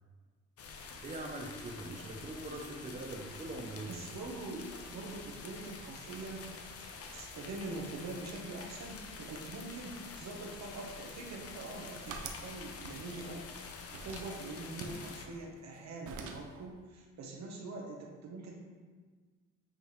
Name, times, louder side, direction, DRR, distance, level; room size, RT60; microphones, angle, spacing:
sound 1, 0.6-15.3, left 4 dB, 50° left, 0.7 m, -47 dB
voice 1, 1.0-4.0, right 2 dB, 25° right, 1 dB, 0.7 m, -42 dB
voice 2, 3.9-6.6 7.1-13.5 14.0-18.6, right 2 dB, 60° right, 0 dB, 1.1 m, -44 dB
sound 2, 11.4-12.5 12.8-13.6 13.9-14.3 14.8-15.8 16.0-16.6, right 4 dB, 80° right, 0.7 m, -46 dB
8.2 x 3.8 x 3.1 m, 1.5 s
cardioid pair, 90°, 30 cm